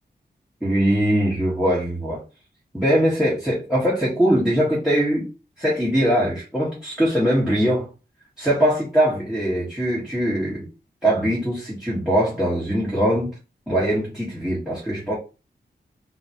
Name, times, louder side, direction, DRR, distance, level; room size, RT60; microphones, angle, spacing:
voice 1, 0.6-2.2 2.7-5.3 5.6-7.9 8.4-10.7 11.0-13.3 13.7-15.1, equal, 5° right, 1.3 m, -21 dB
3.9 x 2.2 x 2.8 m
wide cardioid pair, 90°, 18 cm